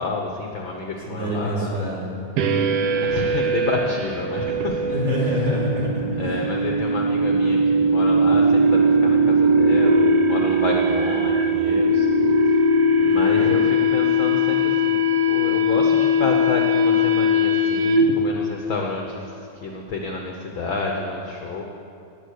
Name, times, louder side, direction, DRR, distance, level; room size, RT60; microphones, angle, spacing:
voice 1, 0.0-1.8 2.9-4.9 6.2-12.1 12.5-12.6 13.0-15.0 15.3-21.6, left 3 dB, 70° left, 1 dB, 1.2 m, -29 dB
voice 2, 1.1-2.0 4.8-6.5 13.0-13.5, equal, 45° right, -6 dB, 3.9 m, -26 dB
sound 1, 2.4-18.3, equal, 70° right, 1.5 m, -20 dB
18.0 x 9.1 x 6.6 m, 2.7 s
omnidirectional pair, 3.7 m